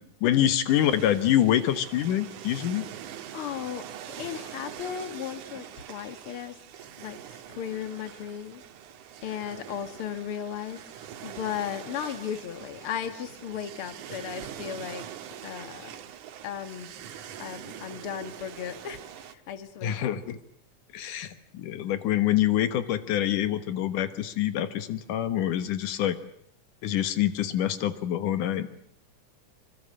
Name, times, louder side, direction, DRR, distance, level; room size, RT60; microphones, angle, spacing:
voice 1, 0.2-2.9 19.8-20.4 20.9-26.2 26.8-28.7, left 11 dB, 85° left, 12 dB, 2.9 m, -26 dB
sound 1, 0.7-19.3, right 10 dB, 80° right, 2.8 m, -43 dB
voice 2, 3.3-6.6 7.0-7.2 7.5-8.6 9.2-10.8 11.2-15.1 15.4-15.9 16.4-16.9 17.4-20.2, left 9 dB, 50° left, 10 dB, 2.4 m, -36 dB
25.0 x 25.0 x 7.8 m, 0.66 s
omnidirectional pair, 3.5 m